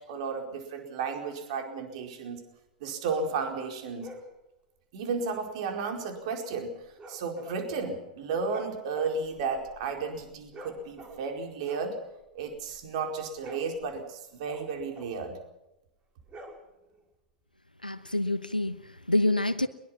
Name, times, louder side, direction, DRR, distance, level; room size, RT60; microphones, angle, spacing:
voice 1, 0.1-2.4 2.8-4.1 4.9-6.7 7.1-11.9 12.3-15.4, right 4 dB, 50° right, 4 dB, 4.7 m, -33 dB
sound 1, 4.0-4.4 7.0-8.1 8.4-11.4 11.6-12.9 13.2-15.3 16.2-17.0, right 1 dB, 20° right, 5.1 m, -47 dB
voice 2, 17.8-19.7, left 1 dB, 90° left, 11 dB, 1.2 m, -27 dB
23.0 x 22.0 x 6.0 m, 0.90 s
figure-of-eight pair, 100°, 5 cm